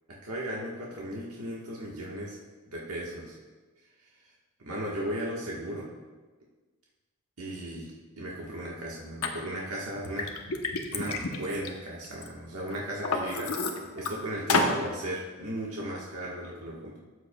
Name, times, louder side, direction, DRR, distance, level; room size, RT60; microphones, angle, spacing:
voice 1, 0.1-2.4 2.7-3.4 4.6-5.9 7.4-10.3 10.9-13.5 13.9-17.0, right 1 dB, 90° right, -4 dB, 1.3 m, -36 dB
Liquid, 9.2-9.3 9.9-12.3 12.7-14.1 14.5-14.8, left 3 dB, 75° left, 0.9 m, -29 dB
13.0 x 8.1 x 2.3 m, 1.3 s
head